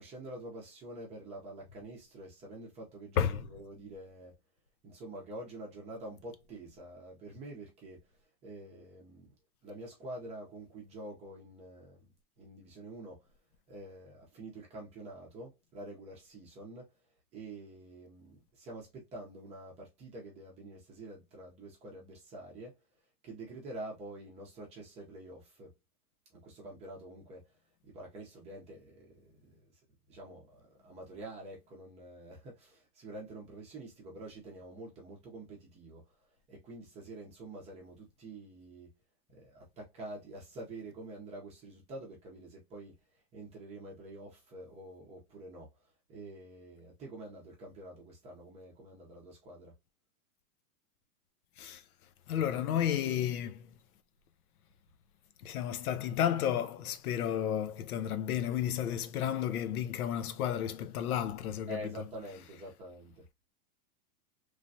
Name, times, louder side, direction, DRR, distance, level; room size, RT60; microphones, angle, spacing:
voice 1, 0.0-4.4 4.8-8.2 8.4-9.3 9.6-12.0 12.4-13.3 13.7-16.9 17.3-22.8 23.2-25.8 26.3-27.5 27.8-29.6 30.1-36.1 36.5-38.9 39.3-42.9 43.3-45.7 46.1-49.7 61.7-63.3, right 1 dB, 15° right, 0.7 m, -47 dB
voice 2, 52.3-53.7 55.4-61.8, left 10 dB, 65° left, 0.6 m, -32 dB
3.2 x 2.3 x 2.6 m
supercardioid pair, 155°, 48 cm